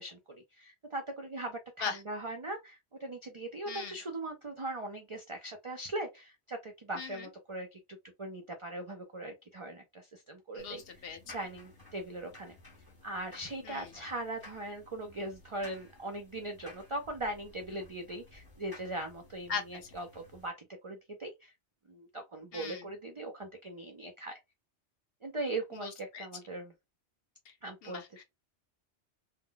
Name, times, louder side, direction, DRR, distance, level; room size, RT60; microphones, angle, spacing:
voice 1, 0.0-7.8 8.2-11.1 11.3-12.6 13.0-21.5 21.9-24.4 25.2-26.7 27.6-28.0, right 2 dB, 55° right, 0.3 m, -40 dB
voice 2, 3.7-4.0 7.0-7.3 10.5-11.2 13.6-13.9 19.5-19.9 22.5-22.8 25.8-26.3 27.5-27.6 27.8-28.2, left 6 dB, 65° left, 0.7 m, -39 dB
sound 1, 10.6-20.5, left 2 dB, 25° left, 0.7 m, -55 dB
2.1 x 2.0 x 3.7 m
omnidirectional pair, 1.2 m